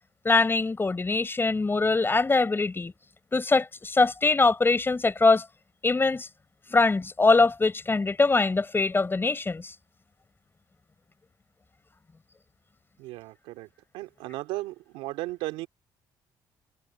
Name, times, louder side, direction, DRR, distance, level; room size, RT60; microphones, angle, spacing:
voice 1, 0.2-2.9 3.3-5.4 5.8-6.3 6.7-9.7, left 3 dB, 25° left, 5.6 m, -23 dB
voice 2, 13.0-13.7 13.9-15.7, right 18 dB, 90° right, 3.0 m, -35 dB
supercardioid pair, 80°, 9 cm